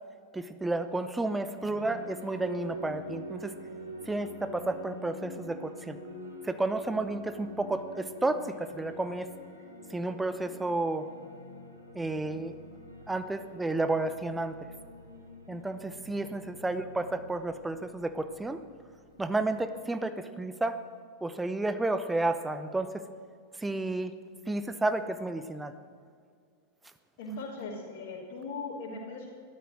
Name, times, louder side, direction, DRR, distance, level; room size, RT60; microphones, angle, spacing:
voice 1, 0.3-3.5 4.1-6.0 6.4-9.3 9.9-11.1 11.9-12.5 13.1-14.6 15.5-18.6 19.2-20.8 21.2-23.0 23.6-24.1 24.5-25.7, right 2 dB, 10° right, 11 dB, 0.9 m, -31 dB
sound 1, 1.5-19.6, equal, 85° right, 2.2 m, -46 dB
voice 2, 27.2-29.3, left 3 dB, 55° left, -9 dB, 3.3 m, -39 dB
14.0 x 12.5 x 6.3 m, 2.2 s
figure-of-eight pair, 90°, 0 cm